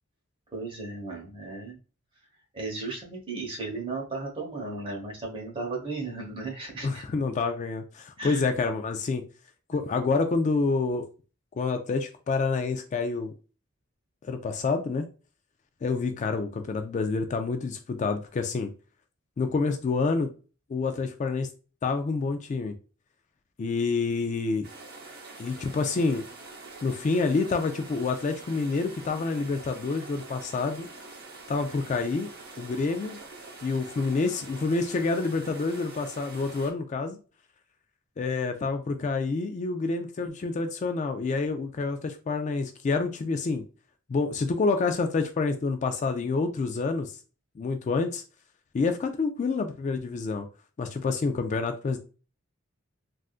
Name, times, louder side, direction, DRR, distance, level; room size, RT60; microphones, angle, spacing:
voice 1, 0.5-1.8 2.5-7.0 8.2-8.4, right 3 dB, 25° right, 0 dB, 1.1 m, -35 dB
voice 2, 6.8-9.2 9.7-11.1 11.6-13.3 14.2-15.1 15.8-18.7 19.4-20.3 20.7-21.5 21.8-22.7 23.6-24.7 25.4-26.2 26.8-30.9 31.5-32.3 32.6-33.2 33.6-37.2 38.2-43.6 44.1-47.2 47.6-48.2 48.7-50.5 50.8-52.0, left 4 dB, 35° left, 7 dB, 0.3 m, -28 dB
sound 1, 24.6-36.7, right 3 dB, 50° right, 0.9 m, -45 dB
3.5 x 2.5 x 2.4 m, 0.35 s
head